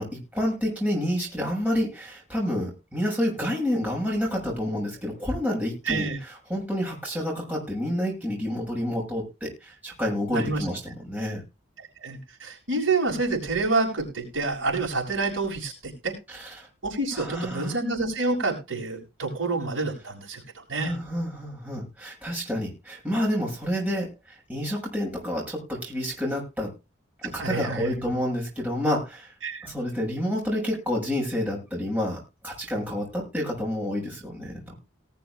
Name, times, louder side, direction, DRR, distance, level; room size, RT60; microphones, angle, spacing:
voice 1, 0.0-11.4 16.3-16.7 17.1-17.7 20.7-26.7 27.2-29.3 29.6-34.8, equal, 10° right, -3 dB, 7.0 m, -29 dB
voice 2, 5.9-6.2 10.3-10.7 11.8-16.1 16.8-20.9 27.4-28.1 29.4-29.7, right 3 dB, 80° right, -2 dB, 6.8 m, -28 dB
19.5 x 7.2 x 3.5 m, 0.27 s
head